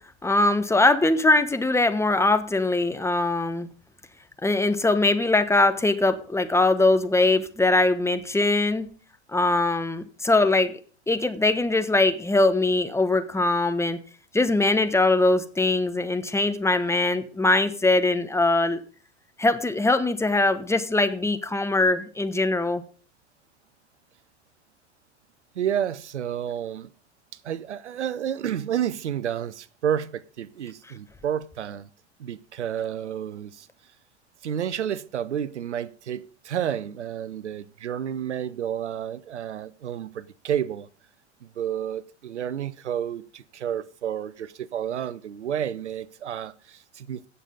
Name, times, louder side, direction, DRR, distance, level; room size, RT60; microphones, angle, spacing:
voice 1, 0.2-3.7 4.4-8.9 9.3-10.8 11.1-14.0 14.3-18.8 19.4-22.8, left 2 dB, 10° left, 1.2 m, -22 dB
voice 2, 25.6-26.9 27.4-31.9 32.2-33.7 34.4-40.9 41.4-47.2, right 9 dB, 90° right, 0.7 m, -30 dB
16.5 x 6.8 x 3.9 m
hypercardioid pair, 90°, 34 cm